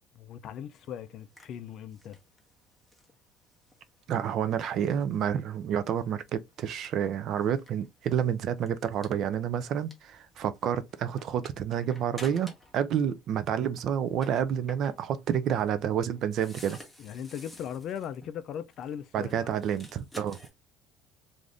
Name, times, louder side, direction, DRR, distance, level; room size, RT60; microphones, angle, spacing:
voice 1, 0.2-2.2 17.0-19.3, left 9 dB, 45° left, 0.3 m, -38 dB
sound 1, 0.7-12.9 13.1-20.5, left 1 dB, 5° left, 0.7 m, -53 dB
voice 2, 4.1-16.8 19.1-20.4, right 9 dB, 45° right, 0.3 m, -29 dB
2.5 x 2.5 x 3.2 m
cardioid pair, 155°, 0 cm